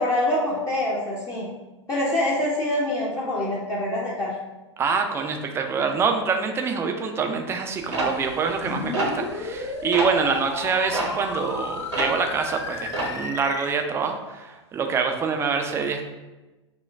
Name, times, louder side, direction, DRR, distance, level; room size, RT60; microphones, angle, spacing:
voice 1, 0.0-1.5 1.9-4.3, left 1 dB, 20° left, -6 dB, 0.7 m, -25 dB
voice 2, 4.8-16.1, right 5 dB, 15° right, 5 dB, 0.4 m, -25 dB
sound 1, 7.9-9.6 9.9-10.2 10.9-12.3 12.6-13.2, right 1 dB, 75° right, 1.0 m, -28 dB
sound 2, 8.6-13.7, left 3 dB, 75° left, 0.6 m, -33 dB
4.3 x 2.2 x 3.4 m, 1.1 s
figure-of-eight pair, 100°, 15 cm